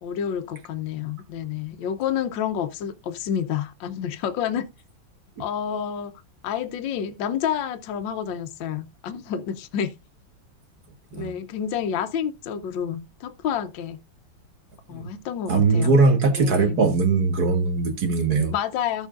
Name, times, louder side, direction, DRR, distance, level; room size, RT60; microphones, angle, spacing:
voice 1, 0.0-4.7 5.4-6.1 6.4-9.9 11.1-14.0 14.9-16.0 16.3-16.9 18.3-19.1, left 8 dB, 75° left, 1.5 m, -29 dB
voice 2, 15.5-18.5, right 4 dB, 55° right, 1.9 m, -20 dB
14.0 x 6.4 x 2.5 m
omnidirectional pair, 2.1 m